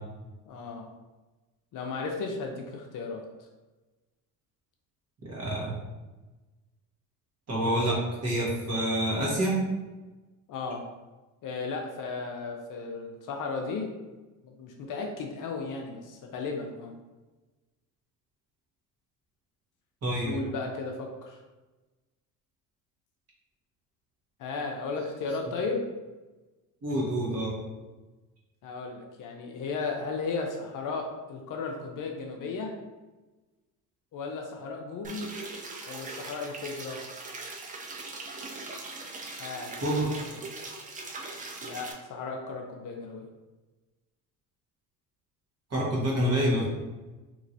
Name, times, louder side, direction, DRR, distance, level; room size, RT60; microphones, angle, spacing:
voice 1, 0.5-0.9 1.7-3.2 10.5-10.8 11.4-13.9 14.4-16.9 20.2-21.4 24.4-25.9 28.6-32.7 34.1-35.3 35.9-37.0 39.4-39.7 40.3-40.4 41.6-43.3, left 4 dB, 50° left, 2 dB, 0.5 m, -35 dB
voice 2, 5.2-5.7 7.5-9.6 20.0-20.3 26.8-27.5 39.8-40.1 45.7-46.6, right 1 dB, 35° right, -6 dB, 1.4 m, -27 dB
sound 1, 35.0-41.9, right 3 dB, 20° right, 0.4 m, -40 dB
2.9 x 2.9 x 2.6 m, 1.2 s
supercardioid pair, 85°, 43 cm